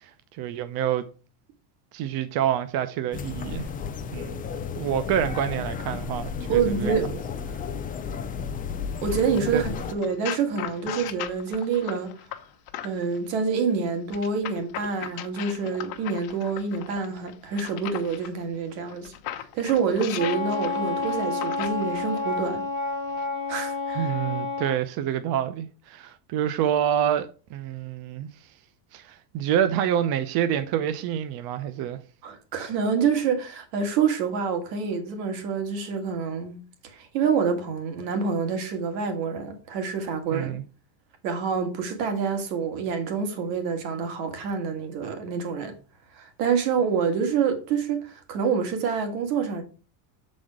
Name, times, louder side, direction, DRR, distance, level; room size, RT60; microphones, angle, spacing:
voice 1, 0.0-1.1 1.9-3.7 4.1-4.4 4.8-7.1 7.5-7.6 9.5-9.6 24.0-28.3 28.9-32.0 40.3-40.6, right 10 dB, 50° right, 0.7 m, -27 dB
sound 1, 3.1-9.9, left 6 dB, 20° left, 0.4 m, -33 dB
voice 2, 6.5-7.2 9.0-12.1 12.8-22.6 23.5-24.1 32.2-36.6 36.8-40.5 41.2-45.7 46.1-49.6, right 6 dB, 85° right, 2.1 m, -27 dB
sound 2, 9.1-13.2 14.1-18.3 18.9-22.3 23.1-23.2, left 12 dB, 50° left, 1.0 m, -38 dB
Wind instrument woodwind instrument, 20.2-24.8, left 3 dB, 25° right, 1.8 m, -29 dB
7.4 x 4.2 x 4.8 m
cardioid pair, 135°, 48 cm